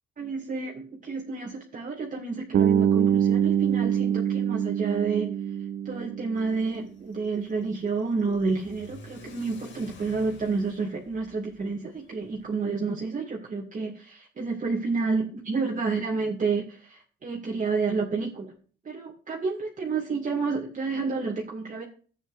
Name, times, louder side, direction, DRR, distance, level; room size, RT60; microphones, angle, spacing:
voice 1, 0.2-5.3 5.9-18.5 18.8-21.8, right 4 dB, 40° right, -1 dB, 2.2 m, -30 dB
Bass guitar, 2.5-6.6, right 9 dB, 60° right, 0.8 m, -24 dB
Car / Accelerating revving vroom, 6.3-12.5, left 2 dB, 70° left, 2.5 m, -51 dB
13.0 x 8.4 x 2.6 m, 0.40 s
cardioid pair, 90°, 20 cm